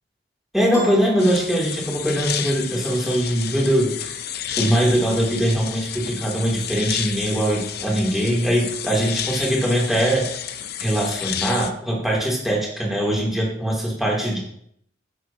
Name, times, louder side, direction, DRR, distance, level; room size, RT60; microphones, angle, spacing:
voice 1, 0.5-4.1 4.6-10.2 10.8-14.4, right 1 dB, ahead, -4 dB, 3.0 m, -21 dB
Piano, 0.7-2.3, equal, 15° left, 2.8 m, -37 dB
sound 1, 1.2-11.7, left 9 dB, 55° left, 0.7 m, -31 dB
11.0 x 8.5 x 2.9 m, 0.71 s
head